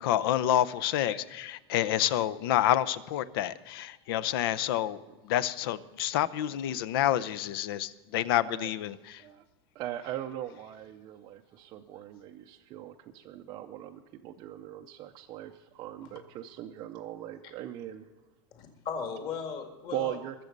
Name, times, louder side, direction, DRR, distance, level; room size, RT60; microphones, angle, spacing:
voice 1, 0.0-5.0 5.2-9.2, left 12 dB, 55° left, 16 dB, 0.7 m, -28 dB
voice 2, 9.7-18.1 19.9-20.3, right 12 dB, 30° right, 2 dB, 0.6 m, -40 dB
voice 3, 18.5-20.2, left 6 dB, 30° left, 4 dB, 2.0 m, -38 dB
21.5 x 7.5 x 5.3 m, 1.2 s
supercardioid pair, 165°, 14 cm